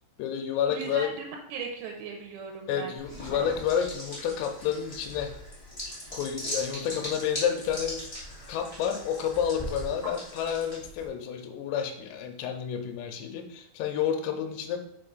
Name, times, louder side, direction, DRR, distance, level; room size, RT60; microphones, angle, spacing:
voice 1, 0.2-1.1 2.7-5.4 6.1-8.1 8.5-14.8, left 8 dB, 85° left, 5 dB, 2.8 m, -30 dB
voice 2, 0.7-3.0, right 5 dB, 85° right, 1 dB, 2.9 m, -38 dB
sound 1, 3.0-11.1, left 1 dB, 60° left, 0.3 m, -39 dB
5.9 x 4.5 x 3.9 m, 0.74 s
omnidirectional pair, 5.0 m